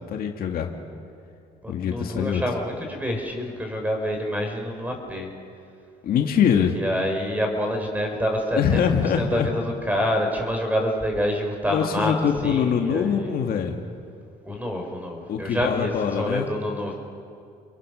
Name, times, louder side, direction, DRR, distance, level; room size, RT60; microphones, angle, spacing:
voice 1, 0.1-0.7 1.7-2.4 6.0-6.8 8.5-9.5 11.7-13.8 15.3-16.5, left 7 dB, 60° left, 3 dB, 2.1 m, -23 dB
voice 2, 1.6-5.3 6.8-8.8 9.2-12.1 12.4-13.4 14.4-16.9, equal, 10° right, 3 dB, 5.1 m, -27 dB
30.0 x 22.5 x 6.5 m, 2.4 s
cardioid pair, 110°, 17 cm